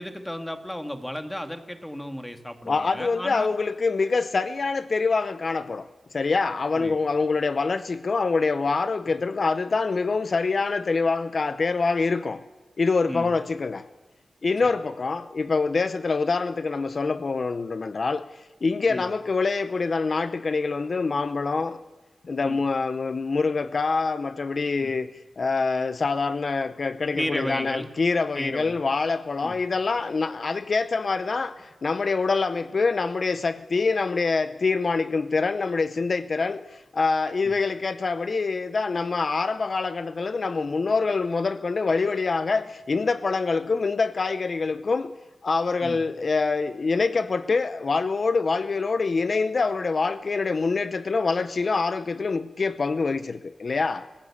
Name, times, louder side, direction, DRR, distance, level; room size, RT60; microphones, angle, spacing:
voice 1, 0.0-3.5 6.7-7.0 13.1-13.3 18.9-19.0 22.4-22.6 24.8-24.9 27.1-27.9 28.4-28.8 29.4-29.6 37.5-37.6 45.8-46.0, equal, 10° left, 1.9 m, -33 dB
voice 2, 2.7-12.4 12.8-13.9 14.4-21.8 22.3-45.2 45.4-54.1, left 4 dB, 55° left, 0.7 m, -25 dB
25.5 x 16.0 x 8.5 m
wide cardioid pair, 95°, 0 cm